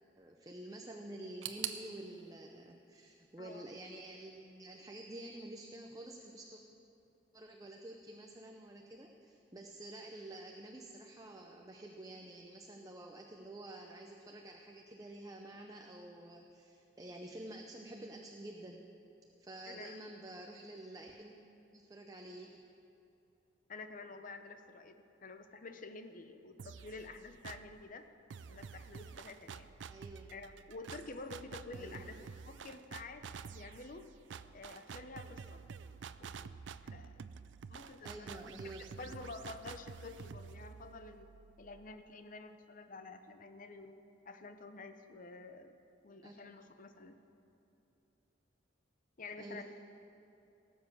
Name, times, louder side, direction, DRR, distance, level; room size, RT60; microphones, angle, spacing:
voice 1, 0.2-6.6 7.3-18.9 19.4-21.3 21.7-22.6 29.9-30.3 31.7-32.2 38.0-39.2 46.2-46.5 49.4-49.6, right 1 dB, 20° right, 2 dB, 0.6 m, -49 dB
sound 1, 1.4-4.3 4.5-5.4 5.6-5.7 6.6-6.7, right 10 dB, 85° right, 0.8 m, -46 dB
voice 2, 19.7-20.0 23.7-28.0 28.5-29.7 30.3-34.1 34.5-35.7 36.2-36.5 36.8-37.3 37.7-38.5 39.0-41.3 41.6-44.0 44.3-45.7 46.0-47.2 49.2-49.6, left 3 dB, 45° left, 8 dB, 0.8 m, -49 dB
sound 2, 26.6-27.8 28.3-42.0, right 6 dB, 70° right, 0.4 m, -50 dB
18.0 x 7.4 x 6.1 m, 2.9 s
head